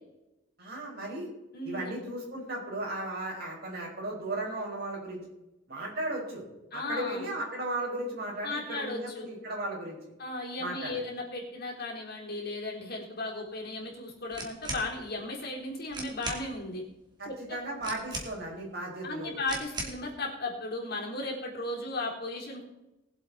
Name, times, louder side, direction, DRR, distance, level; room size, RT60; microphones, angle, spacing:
voice 1, 0.6-1.3 1.6-5.2 5.7-6.4 6.7-10.0 10.6-11.0 17.2-19.4, right 1 dB, 50° right, -2 dB, 5.3 m, -36 dB
voice 2, 1.5-1.9 6.7-7.3 8.4-9.2 10.2-16.8 17.3-17.6 19.0-22.7, left 2 dB, 50° left, -2 dB, 3.8 m, -36 dB
sound 1, 14.3-14.9 15.6-15.7 15.9-16.5 17.8-18.6 19.5-20.0, right 2 dB, 20° right, 2.7 m, -38 dB
21.0 x 7.9 x 4.2 m, 0.95 s
head